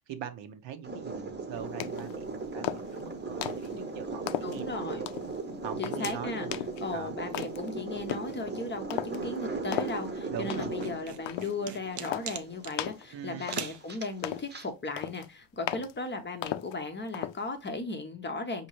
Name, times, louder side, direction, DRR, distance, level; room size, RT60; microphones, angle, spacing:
voice 1, 0.0-4.9 5.6-6.5 6.9-7.2 10.3-10.7 13.1-13.5, right 9 dB, 65° right, 1.0 m, -42 dB
sound 1, 0.8-14.7, right 3 dB, 20° right, 0.9 m, -38 dB
sound 2, 1.8-2.2 2.6-3.0 3.4-3.7 4.3-4.6 5.1-5.3 5.8-6.2 6.5-6.8 7.3-7.7 8.1-8.3 8.9-9.2 9.7-10.0 10.5-10.9 11.3-11.5 12.0-12.3 12.8-13.1 13.5-13.9 14.2-14.5 15.0-15.3 15.7-15.9 16.4-16.8 17.1-17.4, left 13 dB, 70° left, 0.6 m, -35 dB
voice 2, 4.4-5.0 5.8-6.5 6.8-18.7, left 3 dB, 25° left, 0.7 m, -36 dB
sound 3, 10.8-12.8 13.5-13.8, right 8 dB, 40° right, 0.6 m, -39 dB
5.2 x 2.8 x 3.0 m
cardioid pair, 120°, 48 cm